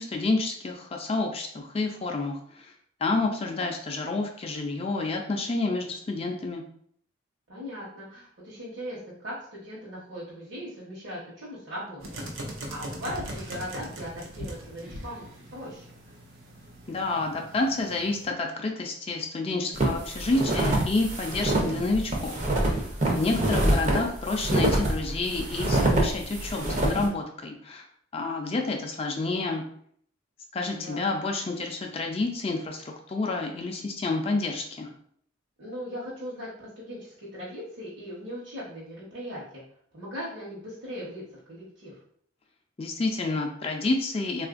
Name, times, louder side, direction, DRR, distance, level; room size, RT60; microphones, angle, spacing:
voice 1, 0.0-2.7 3.0-6.6 16.9-27.9 28.1-29.6 30.5-34.9 42.8-44.5, left 3 dB, 30° left, 2 dB, 0.4 m, -29 dB
voice 2, 7.5-12.2 12.7-15.9 23.0-23.6 30.8-31.1 35.6-39.6 39.9-41.2 41.5-42.0, equal, 65° right, -8 dB, 1.0 m, -39 dB
sound 1, 12.0-18.3, right 1 dB, 90° right, 0.7 m, -40 dB
sound 2, 19.7-27.1, right 1 dB, 35° right, 0.6 m, -26 dB
3.6 x 2.4 x 2.4 m, 0.62 s
head